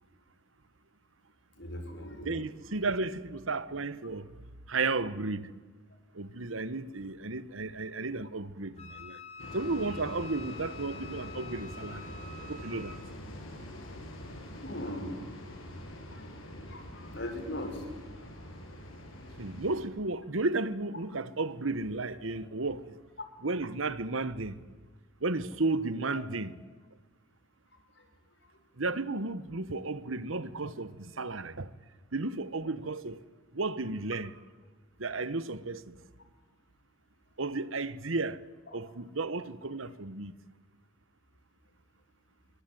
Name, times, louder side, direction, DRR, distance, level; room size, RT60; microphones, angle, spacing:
voice 1, 1.6-2.4 14.6-15.2 16.1-16.3 16.7-17.8, left 1 dB, 55° left, 6.2 m, -39 dB
voice 2, 2.2-4.3 4.7-5.5 6.1-9.2 9.5-12.1 12.5-13.0 19.4-23.0 23.4-24.6 25.2-26.5 28.8-31.7 32.1-33.2 33.5-34.3 35.0-36.0 37.4-38.4 38.7-40.3, right 3 dB, 80° right, 1.2 m, -33 dB
Wind instrument woodwind instrument, 8.8-13.0, left 4 dB, 30° left, 5.1 m, -47 dB
sound 1, 9.4-19.8, left 1 dB, 85° left, 7.6 m, -44 dB
26.5 x 23.5 x 9.2 m
head